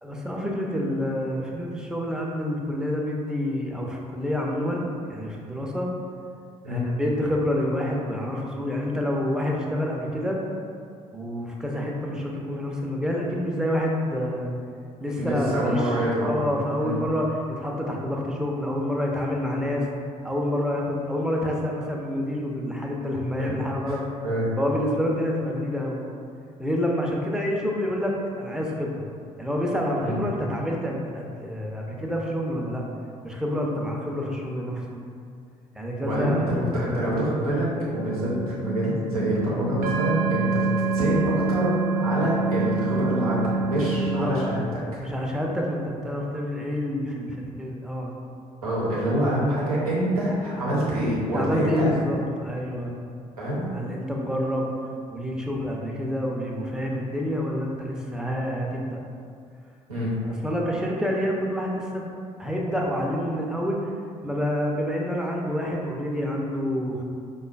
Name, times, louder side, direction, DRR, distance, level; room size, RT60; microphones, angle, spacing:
voice 1, 0.0-4.8 5.1-5.9 6.7-10.4 11.1-14.5 15.0-15.9 16.2-19.8 20.2-24.0 24.6-26.0 26.6-29.1 29.4-32.8 33.2-35.0 35.7-36.4 44.2-44.3 45.0-48.1 51.3-52.9 53.7-54.7 55.1-59.0 60.2-62.1 62.4-63.8 64.2-67.0, left 1 dB, 5° right, -2 dB, 0.5 m, -28 dB
voice 2, 15.2-16.4 16.8-17.0 23.4-23.5 23.9-24.0 24.2-24.5 30.0-30.2 36.0-40.6 40.9-44.8 48.6-51.9 53.4-53.7 59.9-60.1, right 1 dB, 85° right, -7 dB, 0.7 m, -26 dB
sound 1, 37.9-44.3, right 4 dB, 60° right, 0.4 m, -26 dB
4.8 x 2.3 x 2.3 m, 2.3 s
figure-of-eight pair, 50°, 18 cm